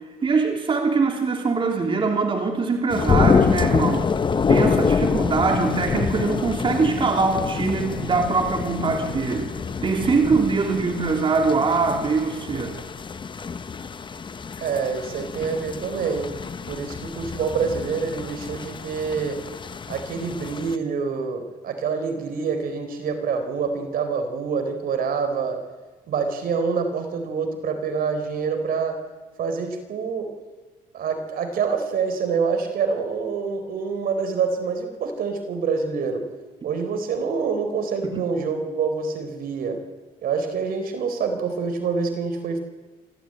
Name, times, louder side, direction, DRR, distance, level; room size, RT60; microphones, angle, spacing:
voice 1, 0.2-4.1 4.5-9.5 9.8-12.8 38.0-38.2, right 4 dB, 30° right, 3 dB, 3.3 m, -22 dB
sound 1, 2.9-20.8, left 5 dB, 30° left, 1.0 m, -26 dB
voice 2, 14.6-16.3 16.7-19.4 19.9-25.6 26.1-29.0 29.4-30.3 30.9-36.2 36.6-39.8 40.2-42.6, right 5 dB, 60° right, 7 dB, 4.2 m, -26 dB
26.5 x 14.5 x 9.0 m, 1.3 s
cardioid pair, 110°, 17 cm